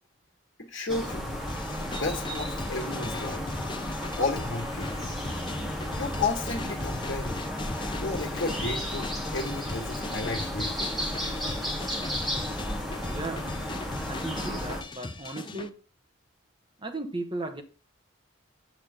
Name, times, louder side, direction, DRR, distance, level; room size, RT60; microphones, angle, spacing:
voice 1, 0.6-1.4 1.8-3.4 4.2-5.1 6.0-7.4 8.0-10.8, left 3 dB, 60° left, 1.6 m, -33 dB
sound 1, 0.9-14.8, equal, ahead, 2.0 m, -33 dB
sound 2, 1.5-15.7, left 2 dB, 25° left, 0.6 m, -39 dB
voice 2, 13.1-13.5 14.1-15.8 16.8-17.6, right 2 dB, 25° right, 1.2 m, -36 dB
8.4 x 7.3 x 3.7 m
head